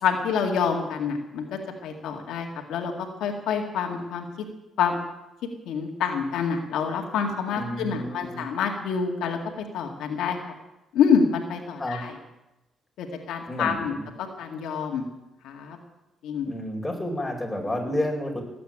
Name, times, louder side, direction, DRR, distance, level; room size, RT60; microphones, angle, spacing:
voice 1, 0.0-4.2 4.8-5.0 5.7-9.4 9.7-10.4 10.9-12.1 13.0-15.0 15.4-15.8 16.2-16.5, left 6 dB, 85° left, 2 dB, 2.2 m, -27 dB
voice 2, 7.5-8.5 11.8-12.0 13.5-14.1 16.4-18.4, left 1 dB, 10° left, 0 dB, 4.6 m, -30 dB
18.0 x 8.5 x 8.9 m, 0.97 s
cardioid pair, 90°, 0 cm